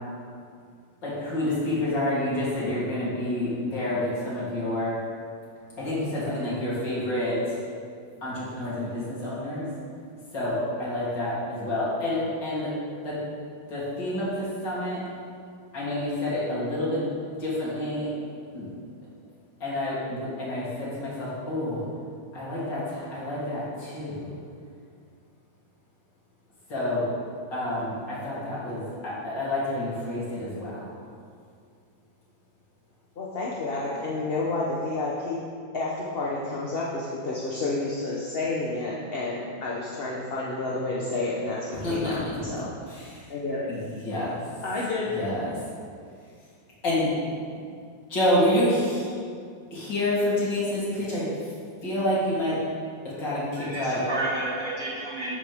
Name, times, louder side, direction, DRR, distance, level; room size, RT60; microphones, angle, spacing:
voice 1, 1.0-5.0 5.8-7.6 8.2-9.7 10.3-12.8 13.0-13.2 13.7-15.0 15.7-17.1 17.4-18.1 18.5-18.7 19.6-21.8 22.3-24.3 26.7-27.1 27.5-30.9 41.7-42.4 42.9-43.3 43.7-44.4 45.1-45.5 46.8-47.1 48.1-49.1 49.7-51.5 51.8-52.6 53.0-54.0, left 1 dB, 65° left, -9 dB, 4.0 m, -28 dB
voice 2, 33.2-35.4 35.7-42.7 43.3-43.7 44.6-45.2, left 2 dB, 40° left, -5 dB, 1.0 m, -30 dB
voice 3, 53.5-55.4, right 2 dB, 40° right, -7 dB, 3.1 m, -31 dB
13.0 x 8.8 x 3.6 m, 2.2 s
omnidirectional pair, 2.1 m